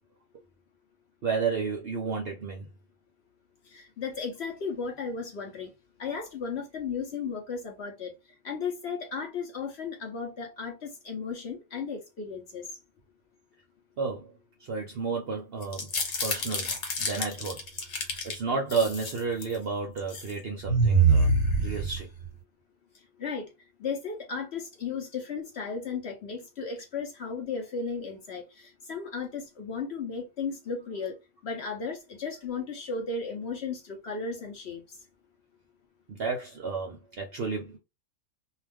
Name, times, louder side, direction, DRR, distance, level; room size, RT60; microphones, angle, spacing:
voice 1, 1.2-2.7 14.0-14.3 14.6-15.9 16.2-22.1 36.1-37.8, right 5 dB, 60° right, 0.6 m, -32 dB
voice 2, 3.7-5.7 6.0-8.1 8.4-12.6 23.2-23.4 23.8-28.4 28.9-31.1 31.4-34.8, left 5 dB, 55° left, 0.8 m, -35 dB
sound 1, 15.6-18.3 18.7-19.6 20.0-20.3 20.7-22.3, right 3 dB, 80° left, 1.3 m, -26 dB
2.4 x 2.3 x 3.4 m
omnidirectional pair, 1.5 m